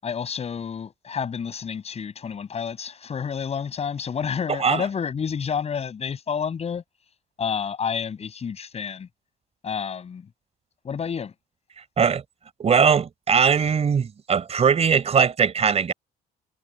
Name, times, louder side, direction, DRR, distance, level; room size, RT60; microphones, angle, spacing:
voice 1, 0.0-6.8 7.4-9.1 9.6-10.3 10.8-11.3, left 7 dB, 40° left, 7.9 m, -29 dB
voice 2, 12.6-15.9, right 6 dB, 40° right, 4.4 m, -20 dB
cardioid pair, 110°, 17 cm